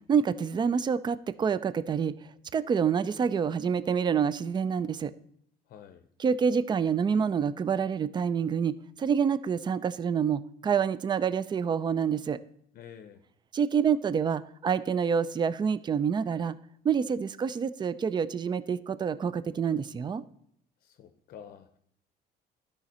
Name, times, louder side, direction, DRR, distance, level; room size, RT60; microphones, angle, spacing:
voice 1, 0.1-2.1 2.5-5.1 6.2-12.4 13.5-16.5 16.8-20.2, right 7 dB, 25° right, 16 dB, 0.4 m, -27 dB
voice 2, 5.7-6.1 12.7-13.2 20.8-21.8, left 8 dB, 60° left, 8 dB, 0.6 m, -49 dB
12.5 x 5.1 x 4.2 m, 0.67 s
cardioid pair, 110°, 17 cm